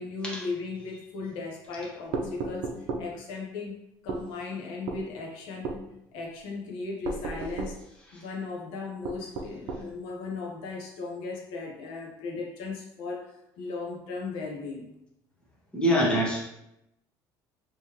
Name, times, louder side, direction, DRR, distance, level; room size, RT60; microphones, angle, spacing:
voice 1, 0.0-3.8 4.0-5.8 6.1-7.8 8.1-14.9, left 4 dB, 75° left, 0 dB, 0.8 m, -37 dB
sound 1, 2.1-3.1 4.1-4.3 4.9-5.1 5.6-5.8 7.0-7.8 9.0-9.9, right 3 dB, 60° right, 0.6 m, -33 dB
voice 2, 15.7-16.4, equal, 10° left, -4 dB, 1.0 m, -24 dB
3.7 x 3.0 x 2.9 m, 0.85 s
cardioid pair, 145°, 8 cm